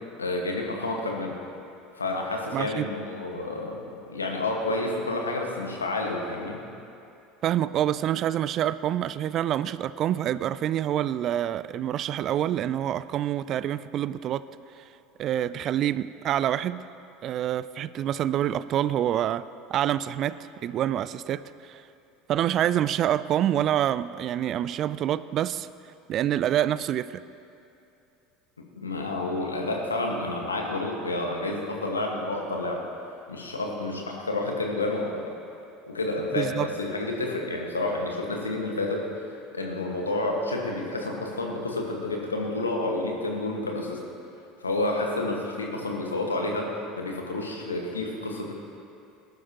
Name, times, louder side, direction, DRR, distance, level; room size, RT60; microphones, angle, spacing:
voice 1, 0.2-1.4 1.9-3.8 4.1-6.6 28.8-32.8 33.3-35.3 35.9-44.0 44.6-48.5, left 2 dB, 90° left, 0 dB, 1.6 m, -30 dB
voice 2, 2.5-2.9 7.4-14.5 14.8-14.9 15.2-16.8 17.2-19.4 19.7-21.8 22.3-25.7 26.1-27.2 36.4-36.7, right 11 dB, 45° right, 16 dB, 0.4 m, -27 dB
19.0 x 11.5 x 3.0 m, 2.7 s
figure-of-eight pair, 70°, 0 cm